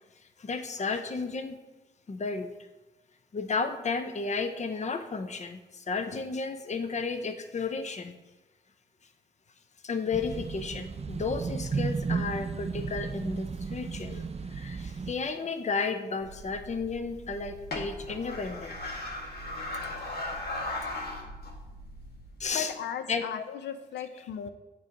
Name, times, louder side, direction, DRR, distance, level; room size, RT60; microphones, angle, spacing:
voice 1, 0.4-1.6 2.1-2.5 3.3-8.2 9.8-18.7 22.4-22.7 23.1-23.3 24.2-24.3, left 4 dB, 40° left, 8 dB, 0.7 m, -33 dB
sound 1, 10.1-15.1, right 5 dB, 35° right, 0.5 m, -34 dB
sound 2, 16.2-22.5, left 1 dB, 65° left, 1.6 m, -38 dB
voice 2, 22.5-24.5, left 8 dB, 85° left, 10 dB, 0.5 m, -36 dB
8.2 x 3.2 x 5.1 m, 1.1 s
cardioid pair, 50°, 17 cm